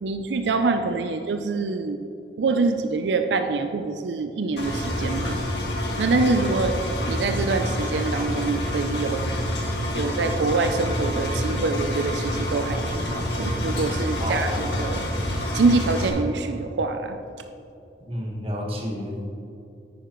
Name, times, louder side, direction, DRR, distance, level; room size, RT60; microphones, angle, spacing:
voice 1, 0.0-2.0 2.4-5.4 6.0-6.8 7.1-9.3 9.9-15.0 15.5-17.2, right 3 dB, 90° right, 7 dB, 0.5 m, -25 dB
Engine, 4.6-16.1, left 1 dB, 80° left, 1.7 m, -27 dB
voice 2, 14.2-14.8 18.1-19.3, left 1 dB, 35° right, -1 dB, 1.4 m, -30 dB
10.0 x 9.2 x 3.1 m, 2.8 s
head